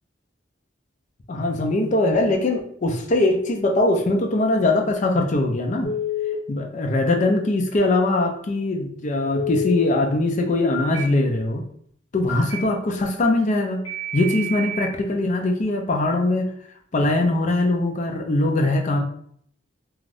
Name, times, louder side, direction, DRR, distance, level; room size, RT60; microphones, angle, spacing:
voice 1, 1.3-5.9 6.5-11.6 12.1-13.8 14.1-16.5 16.9-19.0, left 2 dB, 40° left, 3 dB, 0.4 m, -21 dB
Telephone, 5.8-6.3 9.3-9.8 10.7-11.0 12.3-12.6 13.9-14.9, left 3 dB, 75° left, 1.0 m, -28 dB
2.5 x 2.4 x 3.2 m, 0.63 s
head